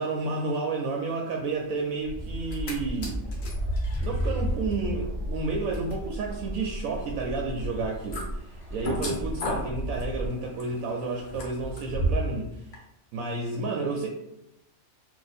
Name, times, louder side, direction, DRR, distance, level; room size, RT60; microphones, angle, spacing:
voice 1, 0.0-3.2 4.0-12.6 13.1-14.1, right 3 dB, 75° right, 0 dB, 1.0 m, -31 dB
sound 1, 2.0-10.3, equal, 15° right, 0.5 m, -35 dB
sound 2, 2.3-2.7 3.0-12.4 12.7-12.8, equal, 55° left, 0.9 m, -33 dB
2.6 x 2.4 x 4.0 m, 0.82 s
omnidirectional pair, 1.5 m